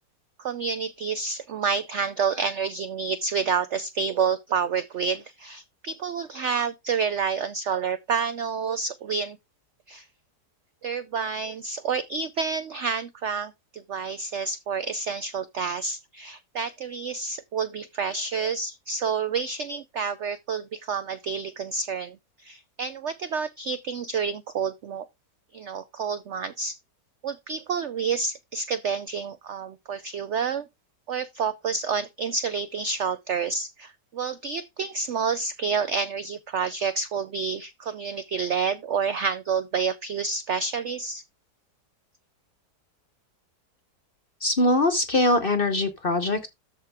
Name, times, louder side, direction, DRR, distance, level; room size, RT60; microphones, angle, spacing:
voice 1, 0.4-9.4 9.9-10.1 10.8-25.1 25.5-26.8 27.2-30.7 31.1-41.2, right 5 dB, 75° right, 0.6 m, -29 dB
voice 2, 44.4-46.5, left 2 dB, 45° left, 0.8 m, -22 dB
13.0 x 4.6 x 3.5 m
omnidirectional pair, 1.9 m